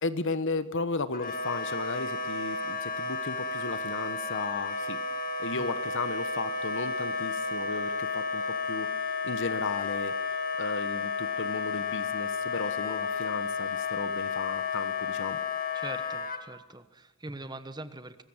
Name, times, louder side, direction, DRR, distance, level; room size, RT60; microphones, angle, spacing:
voice 1, 0.0-5.0 5.4-8.9 9.2-10.1 10.6-15.4, left 3 dB, 60° left, 13 dB, 1.2 m, -35 dB
Wind instrument woodwind instrument, 1.1-16.4, left 4 dB, 40° left, 1.8 m, -32 dB
voice 2, 15.7-18.2, right 2 dB, 20° right, 11 dB, 1.2 m, -42 dB
24.0 x 20.5 x 7.3 m, 1.0 s
head